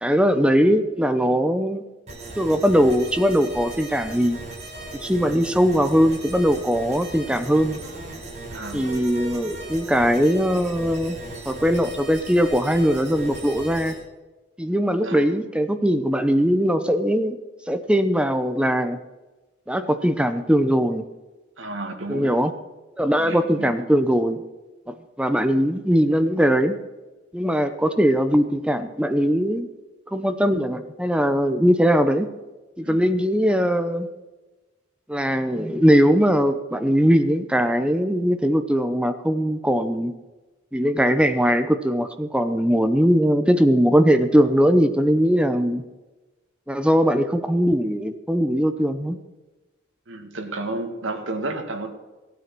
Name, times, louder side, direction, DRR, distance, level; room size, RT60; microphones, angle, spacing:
voice 1, 0.0-1.8 2.4-4.4 4.9-7.8 8.7-11.2 11.5-14.0 14.6-17.4 17.7-19.0 19.7-21.1 22.1-22.5 23.0-24.4 24.9-26.8 27.3-29.7 30.1-32.3 32.8-34.1 35.1-40.1 40.7-45.8 46.7-49.2, equal, 5° right, 9 dB, 0.7 m, -20 dB
sound 1, 2.1-13.9, right 2 dB, 35° right, 4.4 m, -37 dB
voice 2, 8.5-8.8 15.0-15.3 21.6-22.3 23.2-23.7 32.8-33.1 50.1-51.9, right 2 dB, 75° right, 4 dB, 2.0 m, -31 dB
15.5 x 9.3 x 6.0 m, 1.1 s
head